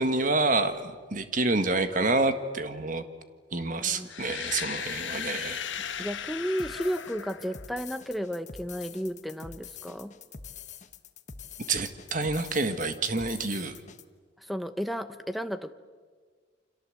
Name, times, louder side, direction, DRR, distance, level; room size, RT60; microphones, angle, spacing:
voice 1, 0.0-3.0 3.5-5.6 11.7-13.7, right 3 dB, 45° right, 9 dB, 1.6 m, -28 dB
sound 1, 4.1-8.0, left 8 dB, 80° left, 1.4 m, -36 dB
voice 2, 6.0-10.1 14.4-15.7, equal, ahead, 11 dB, 0.9 m, -33 dB
sound 2, 6.6-14.0, left 6 dB, 40° left, 1.2 m, -45 dB
29.0 x 26.5 x 7.8 m, 1.5 s
head